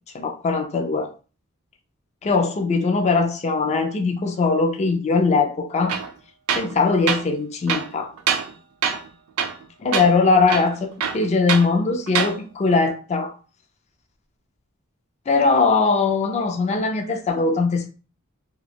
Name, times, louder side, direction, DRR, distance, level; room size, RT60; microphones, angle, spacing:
voice 1, 0.1-1.1 2.2-5.9 6.6-8.1 9.8-13.3 15.3-17.9, left 4 dB, 30° left, 4 dB, 0.3 m, -20 dB
Tools, 5.9-6.1 6.5-6.8 7.1-7.2 7.7-8.5 8.8-9.1 9.4-9.7 9.9-10.1 10.5-11.7 12.1-12.4, right 7 dB, 80° right, 0.4 m, -24 dB
2.3 x 2.2 x 3.3 m, 0.36 s
head